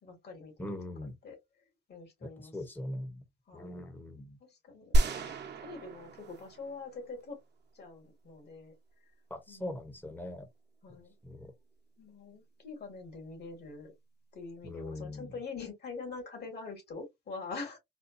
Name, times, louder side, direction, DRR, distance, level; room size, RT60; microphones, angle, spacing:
voice 1, 0.0-0.8 1.2-1.4 1.9-2.9 3.5-3.8 4.4-7.4 7.7-8.7 9.5-9.8 10.8-11.1 12.0-13.9 14.3-17.8, left 4 dB, 55° left, 2.4 m, -44 dB
voice 2, 0.6-1.2 2.4-3.2 3.5-4.4 9.3-10.5 11.2-11.5 14.6-15.3, left 1 dB, 10° left, 1.0 m, -41 dB
sound 1, 4.9-7.2, right 1 dB, 60° right, 1.0 m, -30 dB
4.2 x 2.2 x 2.7 m
cardioid pair, 90°, 20 cm